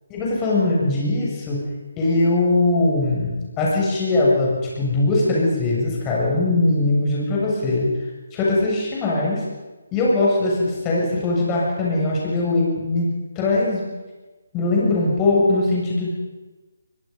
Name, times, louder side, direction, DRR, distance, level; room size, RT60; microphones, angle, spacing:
voice 1, 0.1-1.6 2.0-7.9 8.3-9.4 9.9-13.8 14.5-16.1, left 2 dB, 20° left, -4 dB, 7.3 m, -21 dB
23.0 x 23.0 x 5.6 m, 1.2 s
figure-of-eight pair, 155°, 0 cm